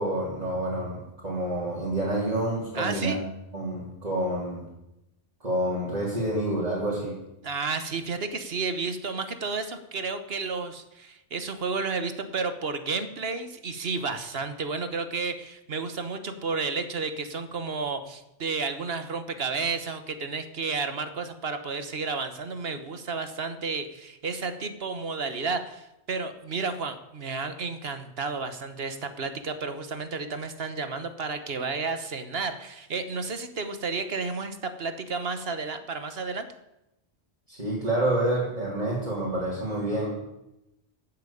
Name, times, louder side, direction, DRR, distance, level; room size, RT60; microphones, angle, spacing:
voice 1, 0.0-3.2 3.5-4.7 5.4-7.2 37.5-40.1, right 1 dB, 35° right, -7 dB, 3.4 m, -28 dB
voice 2, 2.7-3.2 7.4-36.5, right 4 dB, 60° right, 9 dB, 1.4 m, -32 dB
13.0 x 7.6 x 8.5 m, 0.90 s
omnidirectional pair, 1.1 m